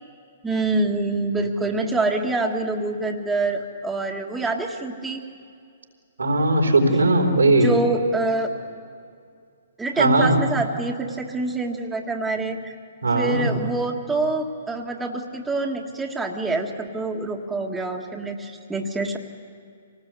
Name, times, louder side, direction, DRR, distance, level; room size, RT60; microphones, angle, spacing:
voice 1, 0.4-5.2 7.4-8.5 9.8-12.7 13.1-19.2, right 2 dB, 10° right, 0 dB, 1.8 m, -26 dB
voice 2, 6.2-7.7 10.0-10.4 13.0-13.6, right 2 dB, 90° right, 2 dB, 4.0 m, -18 dB
25.5 x 19.0 x 8.2 m, 2.3 s
hypercardioid pair, 125°, 0 cm